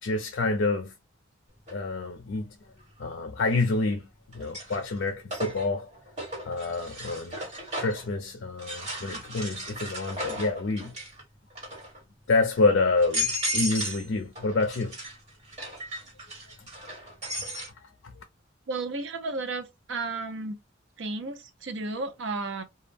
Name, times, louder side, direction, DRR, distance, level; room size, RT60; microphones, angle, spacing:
voice 1, 0.0-0.9 1.7-2.6 3.0-4.1 4.3-5.9 6.4-7.4 7.8-10.9 12.3-15.0 17.8-18.2, left 3 dB, 65° left, 0.4 m, -27 dB
sound 1, 1.7-1.8 3.5-3.9 4.3-8.1 8.6-11.2 11.5-12.0 12.5-12.6 13.0-14.1 14.3-17.7, equal, 35° right, 1.4 m, -35 dB
voice 2, 18.7-20.6 21.0-22.6, right 3 dB, 75° right, 0.5 m, -33 dB
2.2 x 2.0 x 3.2 m
head